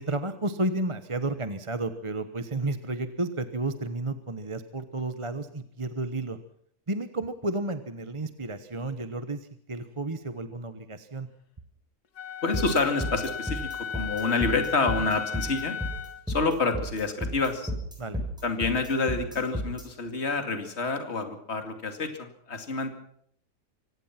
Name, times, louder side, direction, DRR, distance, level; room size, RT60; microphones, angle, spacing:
voice 1, 0.0-6.4 6.9-11.3 18.0-18.2, right 2 dB, 20° right, 10 dB, 1.1 m, -32 dB
Wind instrument woodwind instrument, 12.2-16.2, left 7 dB, 75° left, 1.9 m, -35 dB
voice 2, 12.4-13.7 13.9-15.8 16.3-17.7 18.4-22.9, left 3 dB, 40° left, 7 dB, 2.7 m, -28 dB
sound 1, 12.5-19.8, equal, ahead, 7.8 m, -32 dB
25.0 x 18.0 x 5.9 m, 0.66 s
omnidirectional pair, 1.7 m